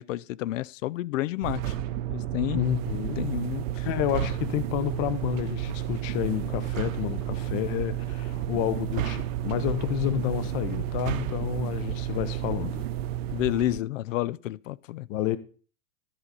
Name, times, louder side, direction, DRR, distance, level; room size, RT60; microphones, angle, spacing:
voice 1, 0.0-1.8 2.1-2.6 3.2-3.9 13.3-15.1, left 15 dB, 75° left, 0.5 m, -30 dB
sound 1, 1.4-13.8, right 12 dB, 50° right, 0.6 m, -32 dB
sound 2, 1.6-2.1 4.1-4.7 6.7-7.2 8.9-9.7 10.9-11.6, right 10 dB, 80° right, 1.1 m, -35 dB
voice 2, 2.5-3.3 3.8-12.8 15.1-15.4, left 12 dB, 40° left, 0.8 m, -30 dB
13.5 x 4.8 x 4.2 m
hypercardioid pair, 135°, 39 cm